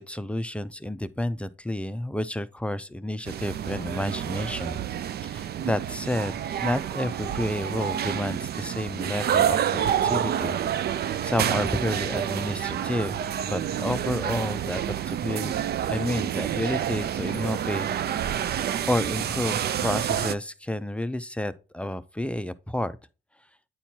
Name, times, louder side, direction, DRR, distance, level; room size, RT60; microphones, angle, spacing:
voice 1, 0.0-4.8 5.2-10.6 10.9-15.5 15.9-17.9 18.9-22.9, left 1 dB, 5° left, 0.5 m, -30 dB
sound 1, 3.2-20.3, right 9 dB, 55° right, 0.5 m, -28 dB
9.2 x 4.4 x 2.8 m
cardioid pair, 90°, 20 cm